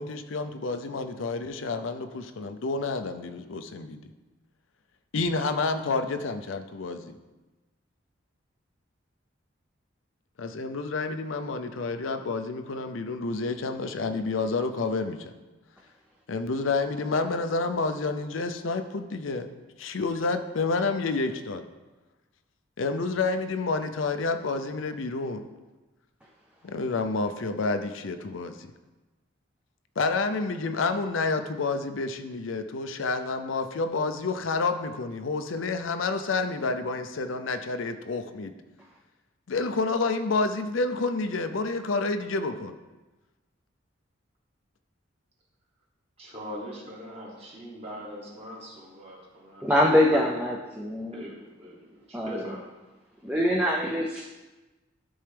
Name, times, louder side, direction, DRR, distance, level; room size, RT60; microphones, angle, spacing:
voice 1, 0.0-4.0 5.1-7.1 10.4-15.3 16.3-19.5 19.8-21.6 22.8-25.5 26.6-28.7 30.0-38.5 39.5-42.8, left 3 dB, 80° left, 8 dB, 0.6 m, -29 dB
voice 2, 46.2-49.6 50.1-50.3 51.1-52.6, equal, 30° right, -3 dB, 1.6 m, -41 dB
voice 3, 49.6-51.3 52.1-52.4 53.2-54.2, left 1 dB, 5° right, -2 dB, 0.5 m, -24 dB
12.5 x 4.4 x 3.4 m, 1.2 s
head